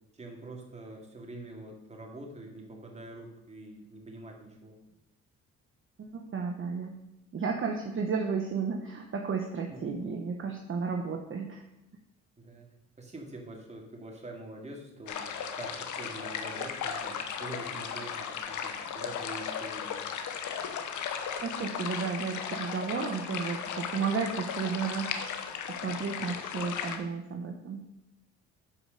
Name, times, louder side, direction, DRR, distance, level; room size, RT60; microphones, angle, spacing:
voice 1, 0.1-4.8 9.7-9.9 12.4-12.7 13.0-15.3 15.6-20.0 26.2-26.3, right 2 dB, 20° right, 1 dB, 2.4 m, -45 dB
voice 2, 6.0-7.0 7.3-11.6 21.4-25.4 25.7-27.9, right 5 dB, 45° right, 2 dB, 1.0 m, -33 dB
sound 1, 15.1-27.0, left 7 dB, 75° left, 1.1 m, -36 dB
9.8 x 4.9 x 6.6 m, 0.89 s
cardioid pair, 90°, 30 cm